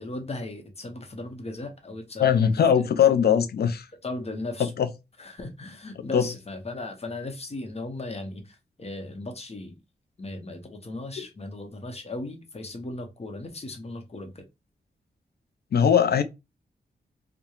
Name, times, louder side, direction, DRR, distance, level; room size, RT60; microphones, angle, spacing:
voice 1, 0.0-2.4 2.7-2.9 4.0-4.7 5.2-9.8 10.2-14.4, left 2 dB, 35° left, 0.8 m, -37 dB
voice 2, 2.2-3.9 4.8-4.9 6.1-6.2 11.2-11.3 15.7-16.2, left 8 dB, 65° left, 0.4 m, -20 dB
2.8 x 2.2 x 2.3 m
cardioid pair, 70°, 18 cm